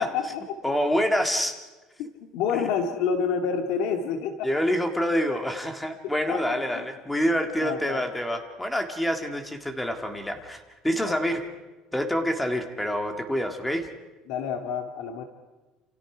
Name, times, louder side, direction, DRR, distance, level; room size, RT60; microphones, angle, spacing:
voice 1, 0.0-0.6 2.0-4.5 6.3-6.8 7.6-8.1 11.0-11.2 14.3-15.2, left 6 dB, 70° left, 5 dB, 2.2 m, -28 dB
voice 2, 0.6-1.6 2.5-2.7 4.4-11.4 11.9-13.9, equal, 5° left, 5 dB, 1.9 m, -27 dB
29.0 x 28.0 x 5.0 m, 1.2 s
cardioid pair, 160°, 0 cm